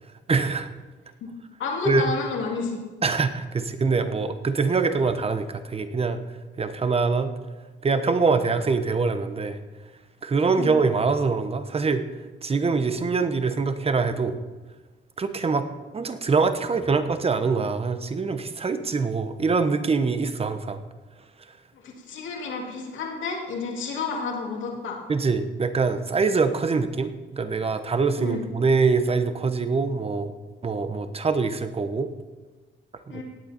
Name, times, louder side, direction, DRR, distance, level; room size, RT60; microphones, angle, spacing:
voice 1, 0.3-0.7 1.8-2.0 3.0-6.2 6.6-7.3 7.8-9.6 10.2-12.0 12.4-14.3 15.2-15.7 15.9-20.8 25.1-30.3 30.6-32.1 33.1-33.2, right 4 dB, 30° right, 10 dB, 1.0 m, -24 dB
voice 2, 1.6-2.8 10.5-10.7 21.8-25.0 28.1-28.4 33.1-33.2, left 4 dB, 75° left, 0 dB, 2.5 m, -30 dB
18.0 x 8.0 x 4.4 m, 1.3 s
cardioid pair, 90°, 20 cm